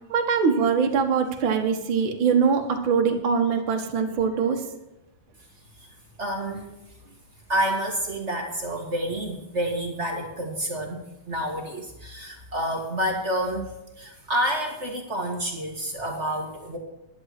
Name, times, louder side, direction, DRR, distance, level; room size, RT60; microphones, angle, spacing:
voice 1, 0.1-4.6, right 6 dB, 45° right, 3 dB, 1.9 m, -22 dB
voice 2, 6.2-6.7 7.5-13.7 14.0-16.8, right 1 dB, 30° right, 1 dB, 1.5 m, -29 dB
11.0 x 10.5 x 6.1 m, 0.93 s
omnidirectional pair, 3.6 m